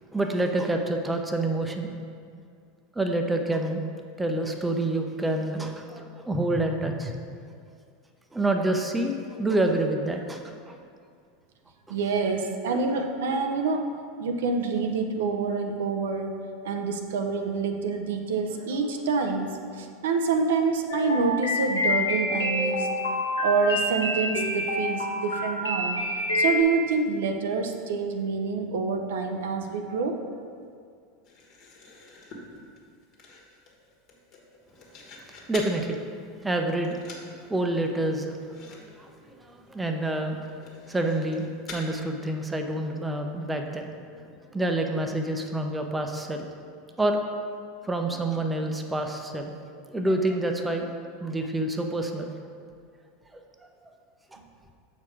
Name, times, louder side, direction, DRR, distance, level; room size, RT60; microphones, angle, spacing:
voice 1, 0.1-1.9 3.0-3.8 4.2-7.1 7.5-7.6 8.3-10.8 11.9-12.0 35.5-36.0 36.4-37.0 37.5-40.4 40.9-43.9 44.5-46.5 47.0-47.2 47.8-49.5 49.9-50.9 51.2-52.3 53.3-53.4 54.3-54.4, right 1 dB, 10° right, 4 dB, 0.7 m, -28 dB
voice 2, 11.9-13.9 14.2-22.9 23.4-26.1 26.3-30.3, right 4 dB, 65° right, 4 dB, 0.5 m, -27 dB
sound 1, 20.9-26.6, left 1 dB, 80° left, 1.0 m, -27 dB
sound 2, 31.2-35.8 36.2-36.6 36.8-37.3 37.6-37.7 38.0-38.1 38.5-38.8 39.1-39.2 39.7-39.8 40.5-41.9, left 3 dB, 45° left, 1.4 m, -46 dB
7.1 x 4.4 x 4.8 m, 2.2 s
figure-of-eight pair, 80°, 0 cm